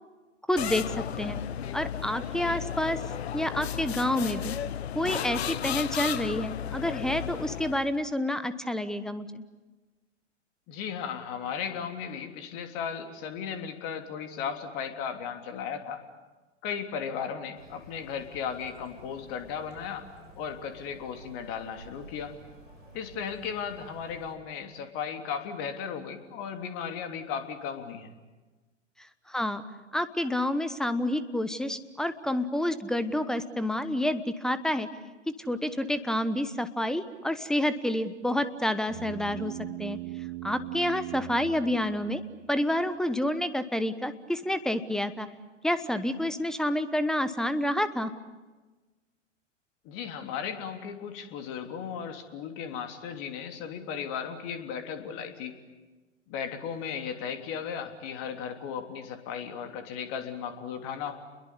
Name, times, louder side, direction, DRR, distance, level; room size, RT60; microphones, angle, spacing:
voice 1, 0.5-1.4 1.7-3.1 3.3-4.5 4.9-9.4 29.3-29.6 29.9-34.9 35.3-39.5 39.8-40.0 40.4-42.2 42.5-45.3 45.6-48.1, left 1 dB, ahead, 13 dB, 1.1 m, -29 dB
sound 1, 0.6-8.0, left 10 dB, 60° left, 1.0 m, -34 dB
voice 2, 10.7-16.0 16.6-20.0 20.4-22.3 22.9-28.1 49.8-55.6 56.3-61.1, left 7 dB, 35° left, 6 dB, 3.3 m, -36 dB
sound 2, 17.5-24.4, equal, 85° right, 7.3 m, -51 dB
sound 3, 38.9-42.6, right 20 dB, 30° right, 0.8 m, -39 dB
29.5 x 22.0 x 8.5 m, 1.2 s
figure-of-eight pair, 105°, 37 cm